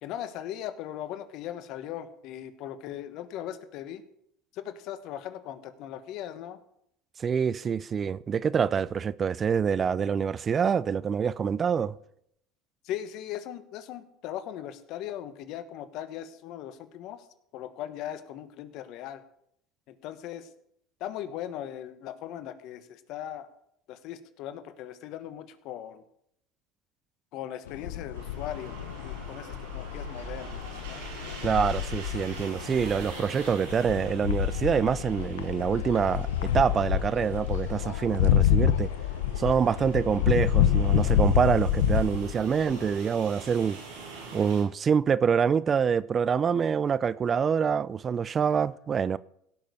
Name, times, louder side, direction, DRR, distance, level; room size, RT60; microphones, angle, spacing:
voice 1, 0.0-4.0 4.5-6.6 12.8-17.3 17.5-19.2 19.9-20.5 21.0-23.5 23.9-26.0 27.3-31.0, left 11 dB, 60° left, 1.3 m, -39 dB
voice 2, 7.2-11.9 31.4-38.9 39.4-43.8 44.3-49.2, right 7 dB, 35° right, 0.4 m, -26 dB
sound 1, 27.7-42.9, left 10 dB, 90° left, 0.9 m, -28 dB
sound 2, 28.1-44.6, right 4 dB, 85° right, 5.7 m, -45 dB
16.5 x 6.5 x 6.9 m
supercardioid pair, 95°, 0 cm